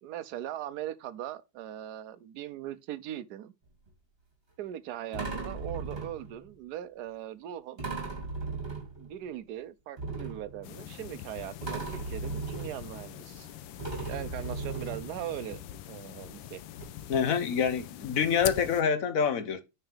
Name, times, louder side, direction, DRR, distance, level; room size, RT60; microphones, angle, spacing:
voice 1, 0.0-3.5 4.6-7.8 9.0-13.5 14.1-15.6 15.9-16.6, right 12 dB, 70° right, 1.0 m, -40 dB
sound 1, 3.6-3.9 5.1-6.5 7.8-9.3 10.0-11.2 11.6-13.5 13.8-15.5 16.4-16.5 16.8-16.9, right 3 dB, 25° right, 3.3 m, -37 dB
sound 2, 10.6-18.8, left 11 dB, 75° left, 1.4 m, -43 dB
voice 2, 17.1-19.6, left 7 dB, 55° left, 1.1 m, -26 dB
9.2 x 4.6 x 3.4 m
omnidirectional pair, 2.2 m